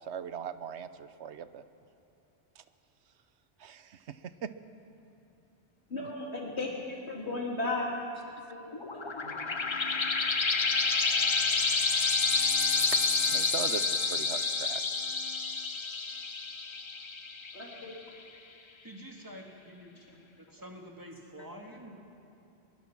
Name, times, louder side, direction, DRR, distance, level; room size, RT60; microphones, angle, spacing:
voice 1, 0.0-1.6 2.6-2.7 3.6-4.5 6.0-6.1 13.3-14.8, right 8 dB, 85° right, 12 dB, 1.1 m, -40 dB
voice 2, 5.9-7.9 8.5-8.6 8.9-9.3 17.5-17.9, left 2 dB, 80° left, -3 dB, 3.6 m, -35 dB
sound 1, 8.7-17.9, left 4 dB, 30° left, 0.7 m, -29 dB
voice 3, 18.8-19.9 20.4-21.9, equal, 20° right, 1 dB, 2.1 m, -47 dB
21.5 x 20.5 x 6.1 m, 2.8 s
omnidirectional pair, 1.1 m